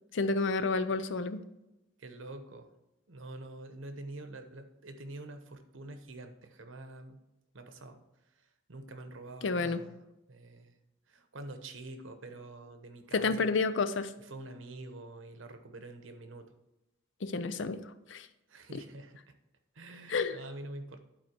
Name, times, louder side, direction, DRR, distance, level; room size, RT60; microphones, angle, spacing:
voice 1, 0.1-1.4 9.4-9.8 13.1-14.1 17.2-17.8 18.1-18.3 20.1-20.4, left 4 dB, 70° left, 12 dB, 0.5 m, -30 dB
voice 2, 2.0-2.7 3.1-7.2 7.5-8.0 8.7-10.0 10.3-10.7 11.1-13.5 14.2-16.5 18.5-19.4 19.7-21.0, right 2 dB, 80° right, 8 dB, 1.0 m, -46 dB
11.0 x 4.4 x 4.5 m, 0.94 s
head